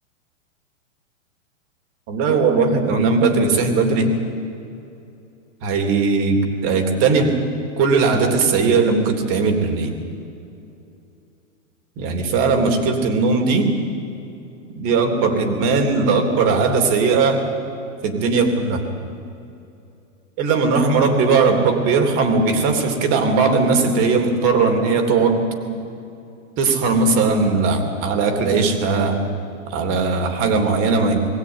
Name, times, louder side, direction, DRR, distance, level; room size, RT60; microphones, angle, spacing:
voice 1, 2.1-4.1 5.6-7.4 7.8-9.9 12.0-13.7 14.8-17.4 18.0-18.8 20.4-25.4 26.6-29.2 29.7-31.2, right 4 dB, 35° right, 5 dB, 3.1 m, -18 dB
21.5 x 16.5 x 9.7 m, 2.7 s
hypercardioid pair, 145°, 39 cm